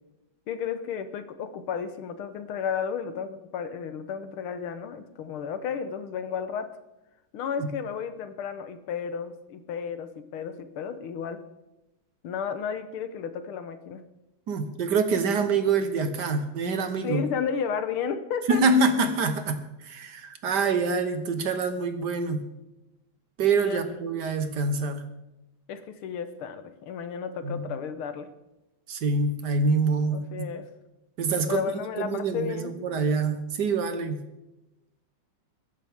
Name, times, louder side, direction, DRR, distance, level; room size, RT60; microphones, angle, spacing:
voice 1, 0.5-6.7 7.3-11.4 12.2-14.0 17.0-18.6 23.6-23.8 25.7-28.3 30.1-30.7 31.5-32.7, left 7 dB, 85° left, 10 dB, 1.9 m, -33 dB
voice 2, 14.5-17.2 18.5-22.4 23.4-25.0 27.4-27.7 28.9-30.5 31.2-31.6 32.0-34.2, right 4 dB, 60° right, 8 dB, 1.6 m, -26 dB
21.5 x 10.5 x 3.6 m, 0.97 s
omnidirectional pair, 2.3 m